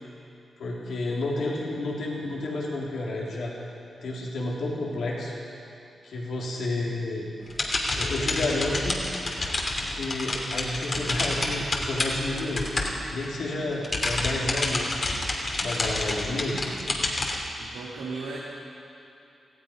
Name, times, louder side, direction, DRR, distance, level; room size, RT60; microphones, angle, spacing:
voice 1, 0.6-3.5 4.0-5.3 6.0-7.3 7.9-9.0 9.8-12.7 13.1-15.1 15.6-16.6, left 2 dB, 75° left, -4 dB, 3.3 m, -30 dB
sound 1, 7.4-13.4 13.7-17.4, left 2 dB, 50° left, 2.8 m, -29 dB
voice 2, 17.6-18.4, right 4 dB, 85° right, -6 dB, 2.2 m, -36 dB
18.5 x 15.0 x 5.2 m, 2.7 s
supercardioid pair, 40°, 0 cm